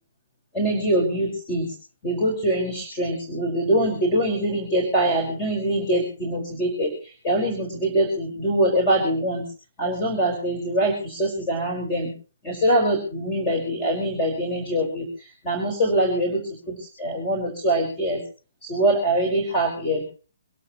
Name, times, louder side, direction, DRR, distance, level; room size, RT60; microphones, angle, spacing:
voice 1, 0.5-1.7 2.0-9.4 9.8-12.1 12.4-16.4 16.7-18.2 18.6-20.0, right 1 dB, 20° left, 2 dB, 5.0 m, -23 dB
26.5 x 12.5 x 3.1 m, 0.38 s
hypercardioid pair, 150°, 0 cm